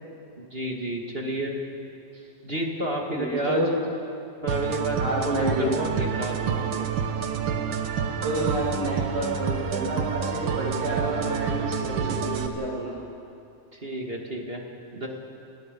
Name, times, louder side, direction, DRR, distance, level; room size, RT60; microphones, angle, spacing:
voice 1, 0.4-1.5 2.4-3.7 4.4-6.6 13.7-14.6 14.9-15.1, right 1 dB, 20° right, 0 dB, 1.9 m, -30 dB
voice 2, 3.1-3.7 5.0-5.7 8.0-12.9, right 1 dB, 85° right, -5 dB, 7.6 m, -29 dB
sound 1, 4.5-12.5, right 7 dB, 60° right, 1.4 m, -28 dB
29.0 x 19.0 x 5.3 m, 2.7 s
omnidirectional pair, 3.6 m